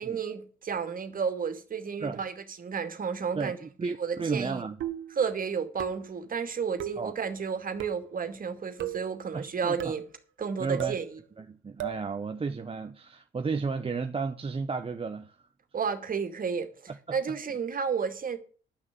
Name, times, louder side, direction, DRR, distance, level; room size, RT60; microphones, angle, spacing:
voice 1, 0.0-3.6 3.8-4.6 5.2-10.0 10.4-11.2 15.7-16.7 17.1-18.4, right 6 dB, 45° right, 2.3 m, -32 dB
voice 2, 3.4-4.8 7.0-7.1 9.3-9.9 10.6-10.9 11.4-15.3 16.9-17.2, right 4 dB, 30° right, 0.9 m, -33 dB
sound 1, 4.8-5.2 5.8-6.2 6.8-7.1 7.8-8.1 8.8-9.1 9.8-10.1 10.8-11.1 11.8-12.1, right 12 dB, 75° right, 1.3 m, -35 dB
11.5 x 6.4 x 9.0 m
cardioid pair, 90°, 20 cm